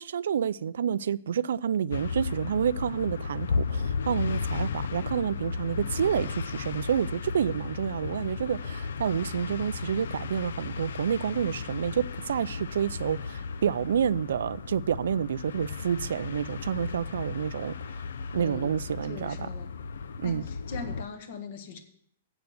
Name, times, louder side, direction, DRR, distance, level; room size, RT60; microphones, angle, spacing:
voice 1, 0.0-17.7 18.3-19.5 20.2-20.4, right 8 dB, 80° right, 0.4 m, -29 dB
sound 1, 1.9-21.0, left 5 dB, 90° left, 0.5 m, -35 dB
voice 2, 18.4-18.7 19.0-19.7 20.2-21.8, left 5 dB, 50° left, 1.4 m, -41 dB
7.9 x 6.9 x 7.8 m
hypercardioid pair, 170°, 0 cm